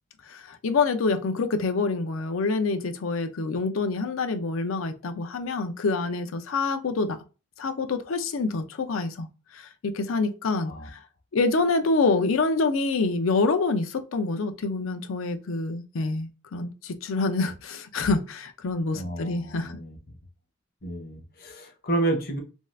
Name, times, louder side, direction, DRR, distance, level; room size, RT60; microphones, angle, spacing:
voice 1, 0.3-7.2 7.6-9.3 9.5-11.0 11.3-19.8, left 3 dB, 85° left, 0.5 m, -26 dB
voice 2, 18.9-20.2 20.8-22.4, right 2 dB, 50° left, 0.7 m, -30 dB
2.6 x 2.3 x 3.1 m
head